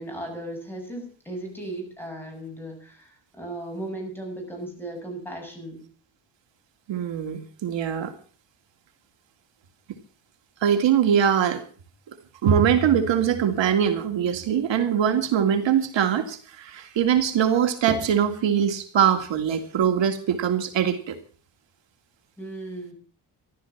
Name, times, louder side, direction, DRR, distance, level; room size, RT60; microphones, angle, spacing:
voice 1, 0.0-5.8 22.4-22.9, right 1 dB, 5° left, 1 dB, 7.1 m, -36 dB
voice 2, 6.9-8.1 10.6-11.6 12.4-21.2, right 8 dB, 75° right, 7 dB, 2.2 m, -22 dB
14.5 x 12.5 x 7.1 m, 0.42 s
wide cardioid pair, 155°, 45 cm